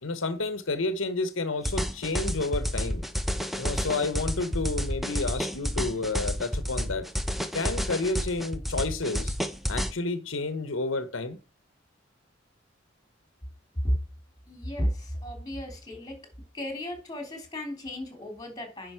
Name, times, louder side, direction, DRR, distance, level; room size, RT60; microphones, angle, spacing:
voice 1, 0.0-3.0 3.6-7.1 7.5-9.3 9.7-11.4, left 3 dB, 90° left, 1.1 m, -30 dB
sound 1, 1.6-9.9, equal, ahead, 0.9 m, -30 dB
voice 2, 14.5-16.3 16.5-18.9, equal, 20° left, 3.4 m, -33 dB
10.0 x 5.5 x 4.6 m
head